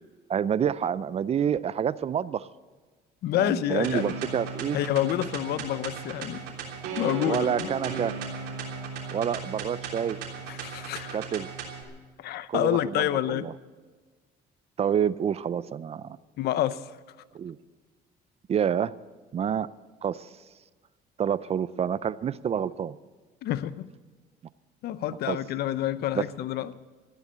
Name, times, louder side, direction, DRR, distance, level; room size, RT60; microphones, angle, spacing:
voice 1, 0.3-2.5 3.4-4.8 7.0-8.2 9.1-10.2 11.1-11.5 12.5-13.5 14.8-16.2 17.3-17.6 18.5-19.0 19.3-19.7 20.0-20.3 21.2-23.0 25.3-25.4 26.1-26.2, right 8 dB, 40° right, 0.5 m, -28 dB
voice 2, 3.2-4.2 4.7-6.4 7.0-7.7 10.5-11.2 12.2-13.5 16.4-17.0 23.4-23.9 24.8-26.8, left 12 dB, 70° left, 0.7 m, -28 dB
sound 1, 3.8-11.8, right 5 dB, 85° right, 3.3 m, -36 dB
14.0 x 10.5 x 9.3 m
cardioid pair, 110°, 17 cm